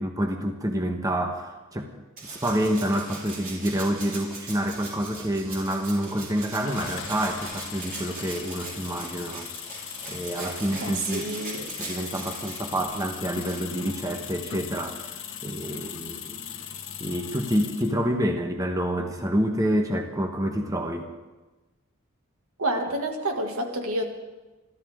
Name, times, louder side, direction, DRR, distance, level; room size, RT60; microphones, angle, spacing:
voice 1, 0.0-1.9 2.2-9.5 10.1-11.3 11.8-16.4 17.0-21.1, equal, 15° right, 4 dB, 1.3 m, -28 dB
Rattle (instrument), 2.2-14.5 15.9-16.0, right 3 dB, 45° right, 6.1 m, -40 dB
sound 1, 6.6-18.0, left 8 dB, 60° left, 1.6 m, -39 dB
voice 2, 10.8-11.7 22.6-24.0, right 1 dB, 75° right, 3 dB, 2.3 m, -29 dB
27.5 x 13.5 x 3.8 m, 1.2 s
head